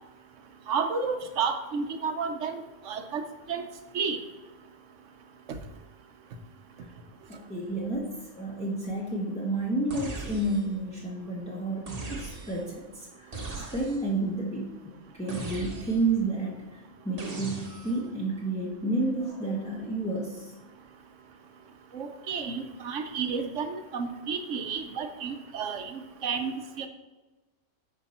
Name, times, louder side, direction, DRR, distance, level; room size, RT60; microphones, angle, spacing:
voice 1, 0.7-3.2 3.5-3.6 3.9-4.2 21.9-26.5 26.8-26.9, right 5 dB, 65° right, 7 dB, 1.1 m, -31 dB
voice 2, 7.3-20.5, right 2 dB, 5° left, -4 dB, 0.9 m, -31 dB
sound 1, 9.9-10.8 11.9-12.7 13.3-14.2 15.3-16.2 17.2-18.1, right 3 dB, 30° right, 1.1 m, -39 dB
10.0 x 5.1 x 4.2 m, 1.1 s
omnidirectional pair, 1.4 m